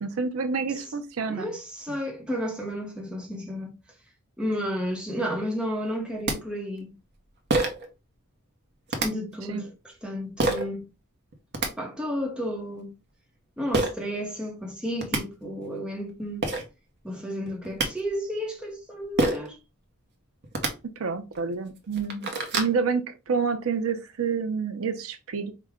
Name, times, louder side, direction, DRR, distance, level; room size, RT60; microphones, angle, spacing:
voice 1, 0.0-1.5 9.5-9.6 21.0-25.5, right 5 dB, 75° right, 0.6 m, -28 dB
voice 2, 1.3-3.7 4.4-6.9 9.0-10.9 11.8-12.9 13.6-16.5 17.0-19.6, equal, 5° right, 0.9 m, -32 dB
sound 1, 5.9-6.0 6.3-6.4 7.5-7.9 8.9-9.1 10.4-10.6 11.3-11.7 13.7-13.9 14.7-14.8 15.0-15.2 16.1-16.2 16.4-16.6 17.5-17.9 19.2-19.5 20.4-20.7 21.3-21.4 21.8-22.7, right 2 dB, 50° right, 0.8 m, -25 dB
4.9 x 2.2 x 3.5 m
head